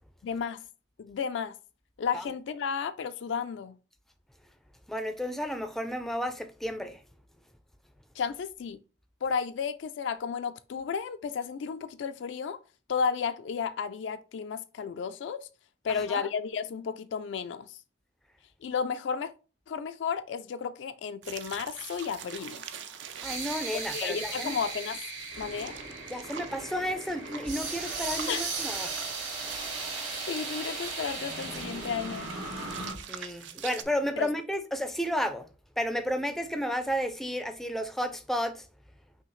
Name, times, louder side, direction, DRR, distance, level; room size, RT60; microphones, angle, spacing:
voice 1, 0.2-0.6 1.0-1.5 2.0-3.8 8.2-8.8 9.2-12.6 12.9-15.4 15.8-17.8 18.6-19.3 19.7-22.6 23.7-25.0 25.4-25.8 28.3-28.4 30.3-32.3 34.2-34.3, left 6 dB, 70° left, 0.3 m, -33 dB
voice 2, 4.9-7.0 15.9-16.3 23.2-24.6 26.1-28.9 33.1-35.5 35.8-38.6, equal, ahead, 0.4 m, -32 dB
sound 1, 21.2-33.8, right 8 dB, 65° right, 0.5 m, -45 dB
sound 2, 22.4-32.9, right 3 dB, 80° right, 2.3 m, -37 dB
5.6 x 2.8 x 3.1 m
head